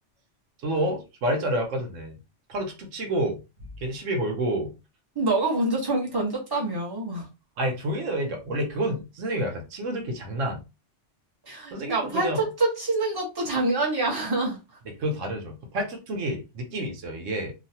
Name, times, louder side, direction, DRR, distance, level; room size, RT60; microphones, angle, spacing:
voice 1, 0.6-2.2 2.5-3.4 3.8-4.7 7.6-10.6 11.7-12.4 15.0-17.5, right 1 dB, 85° right, 3 dB, 1.2 m, -29 dB
voice 2, 5.1-7.3 11.5-14.6, right 2 dB, 20° right, -3 dB, 1.1 m, -26 dB
3.0 x 2.4 x 2.7 m, 0.27 s
omnidirectional pair, 1.2 m